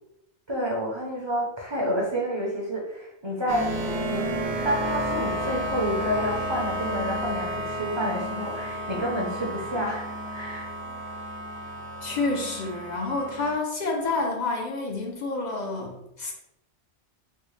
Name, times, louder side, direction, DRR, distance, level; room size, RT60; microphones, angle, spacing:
voice 1, 0.5-3.8 4.1-4.3 4.6-10.7, equal, 30° right, -4 dB, 0.5 m, -29 dB
sound 1, 3.5-13.5, equal, 65° right, 1.0 m, -31 dB
voice 2, 12.0-16.3, left 3 dB, 55° left, 1 dB, 0.5 m, -29 dB
4.2 x 2.0 x 3.1 m, 0.83 s
omnidirectional pair, 1.2 m